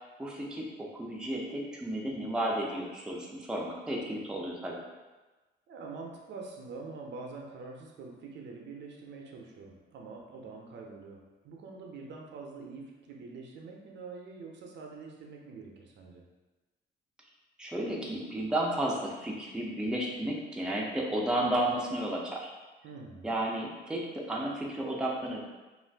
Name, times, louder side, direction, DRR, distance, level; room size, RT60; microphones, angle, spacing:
voice 1, 0.2-4.8 17.6-22.5 23.2-25.4, right 1 dB, 5° right, -2 dB, 0.5 m, -33 dB
voice 2, 5.7-16.2 22.8-23.4, right 4 dB, 65° right, 0 dB, 0.5 m, -45 dB
2.5 x 2.4 x 3.3 m, 1.2 s
cardioid pair, 90°, 20 cm